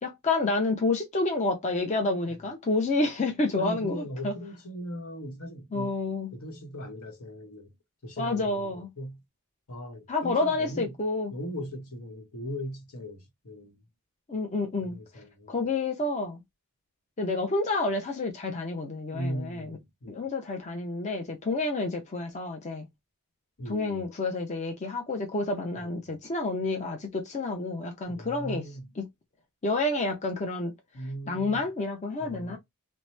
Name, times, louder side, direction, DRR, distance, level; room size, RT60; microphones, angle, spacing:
voice 1, 0.0-4.3 5.7-6.3 8.2-8.9 10.1-11.3 14.3-16.4 17.2-19.7 20.1-22.8 23.7-28.7 29.0-29.1 29.6-30.7 31.3-32.6, left 2 dB, 30° left, 0.5 m, -29 dB
voice 2, 3.5-6.0 6.3-7.7 8.0-9.2 9.7-10.9 11.3-13.8 14.8-15.6 19.1-20.3 23.6-24.1 25.7-26.2 28.1-28.9 30.9-31.7 32.2-32.6, equal, 75° left, 1.1 m, -39 dB
2.8 x 2.1 x 3.1 m
head